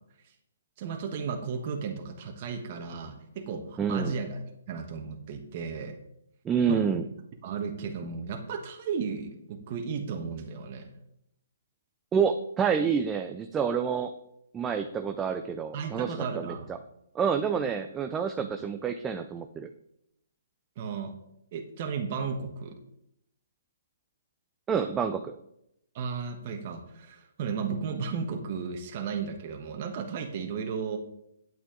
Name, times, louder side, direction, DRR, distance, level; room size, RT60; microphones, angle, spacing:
voice 1, 0.8-4.4 4.7-6.0 6.7-6.9 7.4-10.9 15.7-16.7 18.4-18.5 20.8-21.1 21.5-22.8 25.9-31.0, right 5 dB, 40° right, 3 dB, 1.4 m, -34 dB
voice 2, 3.8-4.1 6.4-7.1 12.1-14.1 14.5-16.8 17.1-19.7 24.7-25.4, right 6 dB, 15° right, 7 dB, 0.5 m, -28 dB
9.2 x 8.7 x 3.8 m, 0.77 s
figure-of-eight pair, 135°, 0 cm